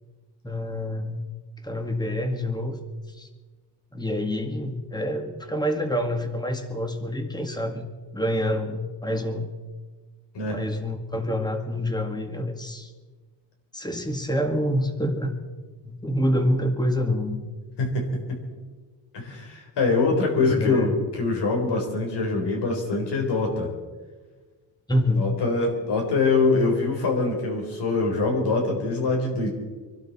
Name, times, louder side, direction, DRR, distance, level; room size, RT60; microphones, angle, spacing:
voice 1, 0.4-1.3 1.6-2.8 3.2-3.3 3.9-9.5 10.5-12.9 13.7-15.3 15.8-17.4 20.4-20.9 24.9-25.3, left 1 dB, 10° left, 5 dB, 1.9 m, -27 dB
voice 2, 17.8-18.4 19.1-23.7 25.2-29.5, left 3 dB, 70° left, 1 dB, 4.1 m, -24 dB
25.0 x 12.0 x 4.3 m, 1.4 s
cardioid pair, 110°, 43 cm